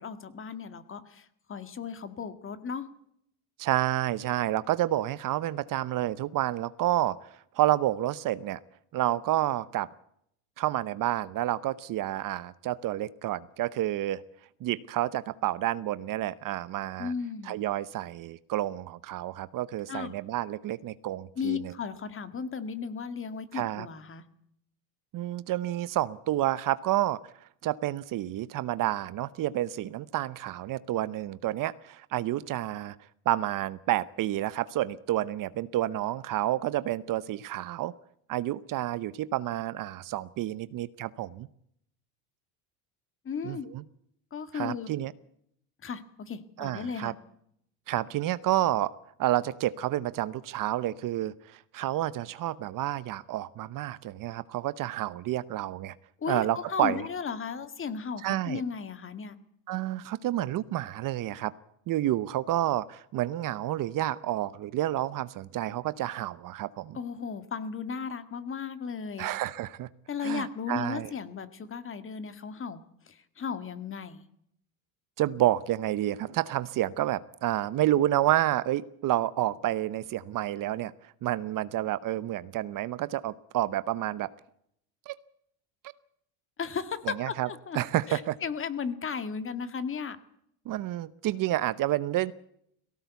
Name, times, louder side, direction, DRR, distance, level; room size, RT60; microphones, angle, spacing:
voice 1, 0.0-2.9 17.0-17.6 19.9-20.2 21.4-24.2 43.2-43.7 44.3-44.9 45.8-47.1 56.2-59.4 66.9-69.3 70.1-74.3 86.6-87.8 88.1-90.2, left 6 dB, 30° left, 11 dB, 2.0 m, -35 dB
voice 2, 3.6-7.3 7.5-8.6 8.9-9.9 10.6-14.2 14.6-17.1 17.5-21.7 23.5-23.9 25.1-27.2 27.6-33.0 33.3-37.9 38.3-41.5 43.4-43.8 44.5-45.1 46.6-47.1 47.9-48.9 49.2-55.9 56.3-57.0 58.2-58.6 59.7-61.5 61.9-67.0 69.2-69.9 70.2-71.1 75.2-80.9 81.2-84.3 85.1-85.2 87.1-87.5 87.7-88.4 90.7-92.3, right 14 dB, 50° right, 17 dB, 0.9 m, -29 dB
18.5 x 17.0 x 8.2 m, 0.72 s
supercardioid pair, 110°, 43 cm